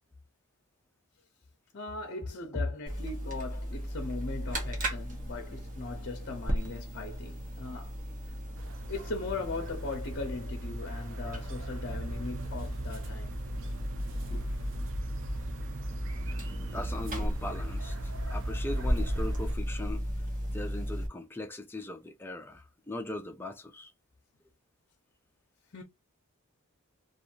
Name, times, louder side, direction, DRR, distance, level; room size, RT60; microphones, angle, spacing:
voice 1, 1.7-8.0 8.9-13.3 14.3-14.5 25.7-25.8, left 3 dB, 50° left, 0.7 m, -39 dB
sound 1, 2.9-21.1, equal, 35° right, 0.9 m, -36 dB
sound 2, 8.6-19.6, right 1 dB, 60° right, 0.5 m, -38 dB
voice 2, 16.7-20.1 20.5-23.9, left 2 dB, 10° left, 0.4 m, -39 dB
2.5 x 2.5 x 2.8 m
head